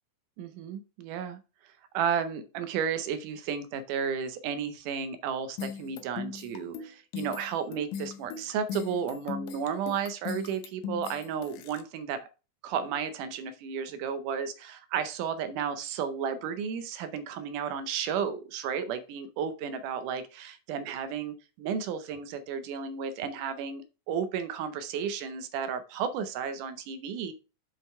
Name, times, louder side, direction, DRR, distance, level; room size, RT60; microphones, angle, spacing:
voice 1, 0.4-12.3 12.6-27.3, right 7 dB, 75° right, 11 dB, 2.1 m, -33 dB
sound 1, 5.6-11.8, left 7 dB, 70° left, 2.0 m, -38 dB
7.7 x 5.1 x 4.4 m, 0.32 s
omnidirectional pair, 4.1 m